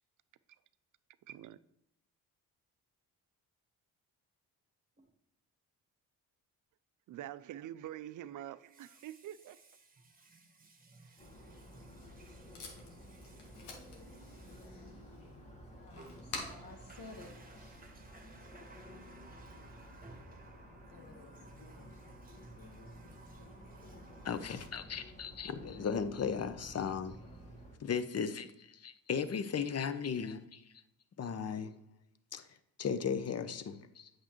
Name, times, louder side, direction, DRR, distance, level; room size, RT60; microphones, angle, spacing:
voice 1, 1.3-1.6 7.1-9.6, right 12 dB, 50° right, 0.5 m, -45 dB
Water tap faucet, 5.0-5.1 8.5-15.4 15.9-24.7, right 2 dB, 20° right, 1.3 m, -59 dB
sound 1, 11.2-27.8, equal, 15° left, 1.5 m, -53 dB
Packing tape duct tape, 11.6-18.1, left 3 dB, 85° left, 1.5 m, -50 dB
voice 2, 15.4-17.3 20.9-21.3, left 3 dB, 55° left, 1.4 m, -54 dB
voice 3, 24.2-27.5 27.8-30.8 31.2-31.8 32.3-34.1, left 6 dB, 35° left, 0.7 m, -37 dB
8.2 x 6.4 x 3.0 m
hypercardioid pair, 55°, 41 cm